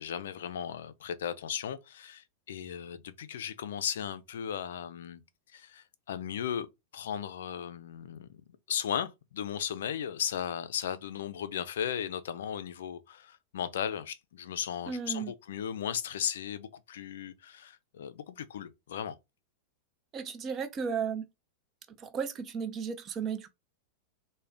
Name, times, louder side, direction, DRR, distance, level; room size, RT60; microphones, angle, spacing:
voice 1, 0.0-5.2 5.5-6.7 6.9-8.4 8.7-19.2, left 9 dB, 70° left, 0.4 m, -36 dB
voice 2, 14.9-15.3 20.1-21.2 22.0-23.5, right 6 dB, 35° right, 0.6 m, -34 dB
2.4 x 2.2 x 3.3 m
hypercardioid pair, 95°, 0 cm